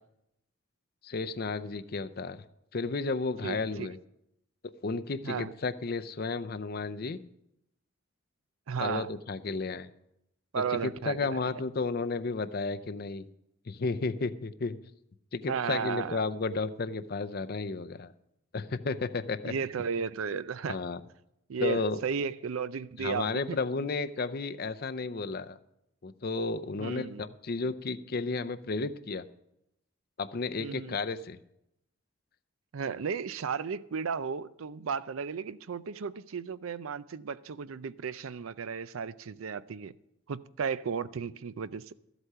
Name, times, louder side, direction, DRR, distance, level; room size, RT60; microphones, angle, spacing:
voice 1, 1.0-2.4 2.7-4.0 4.8-7.2 8.8-9.9 10.8-13.3 13.7-14.8 15.3-18.1 18.5-19.5 20.7-21.0 21.6-22.0 23.0-25.6 26.0-29.3 30.2-31.4, left 3 dB, 50° left, 0.5 m, -33 dB
voice 2, 3.4-3.9 5.2-5.5 8.7-9.1 10.5-11.4 15.5-16.2 19.5-20.8 21.5-23.6 26.8-27.3 30.6-31.0 32.7-39.9 40.3-41.9, right 6 dB, 85° right, 0.5 m, -34 dB
13.5 x 8.1 x 5.6 m
head